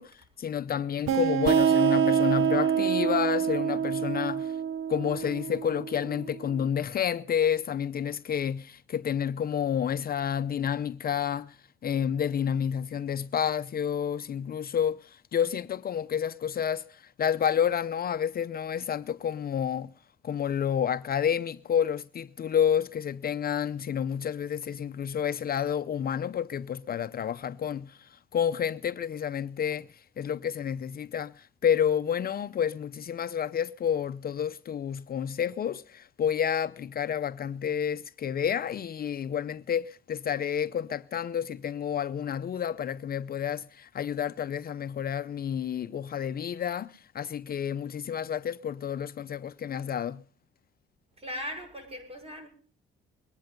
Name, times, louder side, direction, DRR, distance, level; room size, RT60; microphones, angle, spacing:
voice 1, 0.0-4.6 4.9-11.6 11.8-19.9 20.2-50.2, left 8 dB, 50° left, 0.7 m, -30 dB
sound 1, 1.1-6.4, right 7 dB, 90° right, 0.9 m, -26 dB
voice 2, 51.1-52.5, equal, 30° right, 6.5 m, -38 dB
22.0 x 10.5 x 5.2 m
cardioid pair, 90°, 20 cm